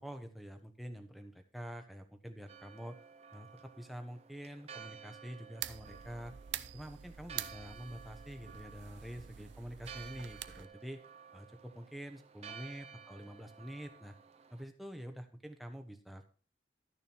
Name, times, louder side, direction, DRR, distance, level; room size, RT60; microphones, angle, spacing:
voice 1, 0.0-3.0 3.3-6.4 6.7-11.0 11.3-14.2 14.5-16.3, equal, ahead, 5 dB, 1.1 m, -47 dB
Church bell, 2.5-14.6, right 7 dB, 35° right, 0.7 m, -54 dB
sound 1, 5.6-10.7, right 11 dB, 80° right, 0.6 m, -46 dB
12.5 x 6.7 x 4.4 m, 0.40 s
head